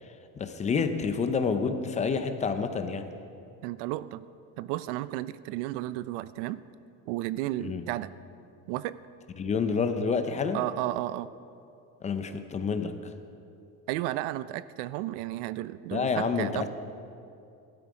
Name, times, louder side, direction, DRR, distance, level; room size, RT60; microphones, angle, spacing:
voice 1, 0.4-3.1 7.6-7.8 9.4-10.6 12.0-12.9 15.9-16.7, left 5 dB, 20° left, 9 dB, 0.6 m, -28 dB
voice 2, 3.6-4.3 4.6-6.6 7.1-8.1 8.7-9.0 10.5-11.3 13.9-16.7, right 15 dB, 75° right, 16 dB, 0.6 m, -33 dB
16.0 x 12.5 x 4.9 m, 2.6 s
cardioid pair, 155°, 36 cm